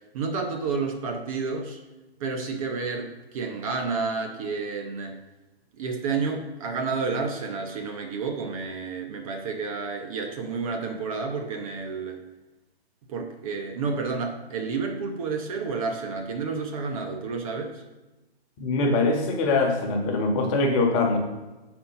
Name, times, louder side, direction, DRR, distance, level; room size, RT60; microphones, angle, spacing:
voice 1, 0.1-1.8 2.2-5.2 5.8-12.2 13.1-17.8, right 4 dB, 35° right, 4 dB, 0.8 m, -30 dB
voice 2, 18.6-21.2, left 3 dB, 30° left, 2 dB, 1.2 m, -23 dB
6.4 x 4.4 x 5.6 m, 1.1 s
hypercardioid pair, 135°, 31 cm